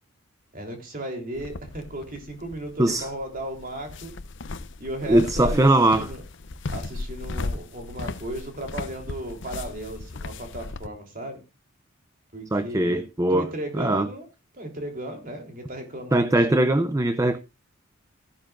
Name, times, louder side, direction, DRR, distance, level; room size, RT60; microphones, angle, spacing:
voice 1, 0.5-4.2 4.8-6.2 6.7-11.4 12.3-13.0 13.3-14.3 14.5-16.6, right 1 dB, 45° right, 3.4 m, -35 dB
sound 1, 1.4-10.9, left 3 dB, 60° left, 0.7 m, -36 dB
voice 2, 5.1-6.1 12.5-13.5 13.8-14.1 16.1-17.4, right 1 dB, 15° right, 0.5 m, -20 dB
14.5 x 12.0 x 2.5 m
head